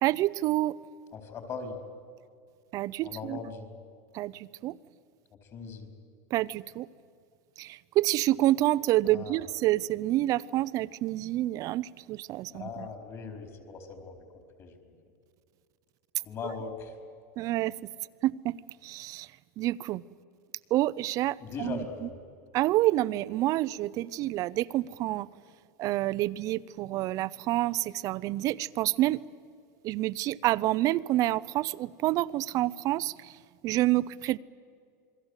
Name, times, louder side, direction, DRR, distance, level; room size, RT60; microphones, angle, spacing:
voice 1, 0.0-0.8 2.7-3.4 4.1-4.8 6.3-6.9 7.6-12.9 17.4-17.8 18.2-19.3 19.6-20.0 20.7-22.1 22.5-25.3 25.8-29.2 29.8-33.3 33.6-34.4, right 16 dB, 40° right, 0.6 m, -28 dB
voice 2, 1.1-1.8 3.0-3.7 5.5-5.9 9.0-9.4 12.5-14.2 14.6-14.9 16.2-16.9 21.4-22.1, left 5 dB, 35° left, 4.5 m, -39 dB
28.0 x 22.5 x 8.3 m
supercardioid pair, 135°, 9 cm